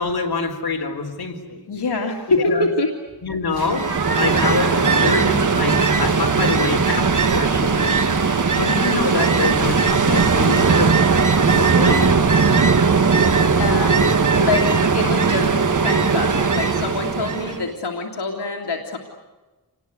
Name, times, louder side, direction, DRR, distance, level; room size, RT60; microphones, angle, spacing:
voice 1, 0.0-1.7 2.4-2.7 3.2-8.1 8.5-11.2 11.5-12.2, left 4 dB, 65° left, 2 dB, 4.0 m, -25 dB
voice 2, 1.7-2.9 13.6-15.5 15.8-19.0, left 3 dB, 90° left, 1 dB, 2.6 m, -24 dB
sound 1, 3.5-11.4, right 3 dB, 70° right, 3.0 m, -33 dB
Ocean, 3.6-17.7, right 5 dB, 50° right, 1.5 m, -18 dB
28.0 x 20.0 x 9.7 m, 1.2 s
wide cardioid pair, 115°, 39 cm